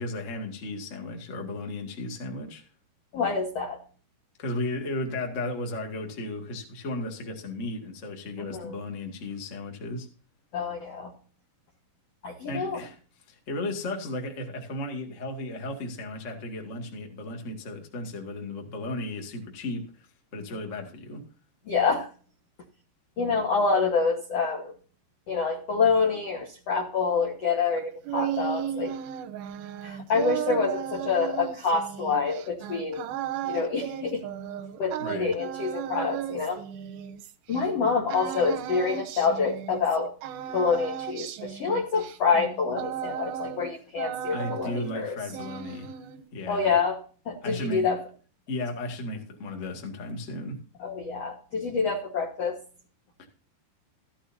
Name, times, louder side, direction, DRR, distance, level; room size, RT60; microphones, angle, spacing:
voice 1, 0.0-2.6 4.4-10.1 12.5-12.9 13.5-19.9 20.3-21.2 35.0-35.3 44.3-45.9 46.3-46.7 47.4-47.9 48.5-50.6 53.2-53.3, left 2 dB, 45° left, 1 dB, 0.9 m, -34 dB
voice 2, 3.1-3.8 8.5-8.8 10.5-11.1 12.2-12.8 21.7-22.1 23.2-24.7 25.3-28.9 29.8-33.1 33.4-34.2 34.8-36.6 37.5-40.1 40.5-45.1 46.5-47.0 47.2-48.0 50.8-52.6, left 5 dB, 80° left, 2 dB, 1.4 m, -27 dB
sound 1, 27.8-37.6 38.1-40.0 40.2-43.7 44.0-45.0 45.3-46.3, right 10 dB, 75° right, 2.3 m, -35 dB
15.0 x 11.5 x 2.8 m, 0.40 s
omnidirectional pair, 5.2 m